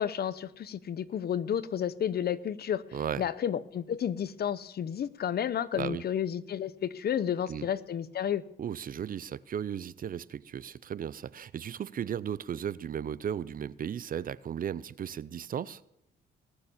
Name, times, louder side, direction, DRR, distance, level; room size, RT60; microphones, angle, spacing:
voice 1, 0.0-2.8 3.2-8.4, left 9 dB, 55° left, 0.8 m, -31 dB
voice 2, 2.9-3.2 5.7-6.0 7.5-7.7 8.6-15.8, right 9 dB, 45° right, 0.5 m, -35 dB
20.0 x 6.9 x 7.3 m
cardioid pair, 90°, 20 cm